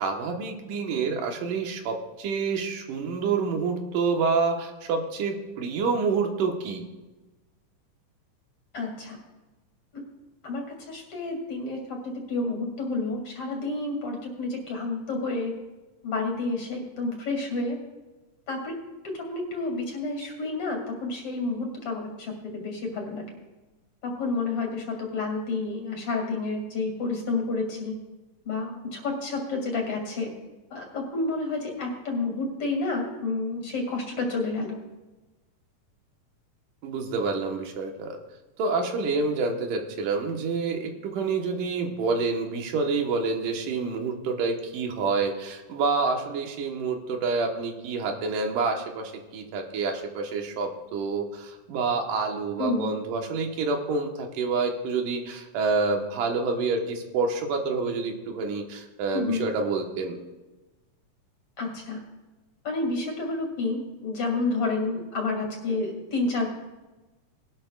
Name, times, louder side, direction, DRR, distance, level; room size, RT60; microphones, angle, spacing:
voice 1, 0.0-6.9 36.8-38.2 38.6-60.2, right 4 dB, 85° right, 3 dB, 2.8 m, -28 dB
voice 2, 8.7-9.2 9.9-10.0 10.4-15.5 16.0-17.8 18.5-18.7 19.0-23.2 24.2-27.9 28.4-30.3 30.7-34.8 52.6-52.9 59.1-59.4 61.6-62.0 62.6-66.5, left 3 dB, 45° left, 0 dB, 3.0 m, -30 dB
19.5 x 12.0 x 2.4 m, 1.1 s
omnidirectional pair, 3.7 m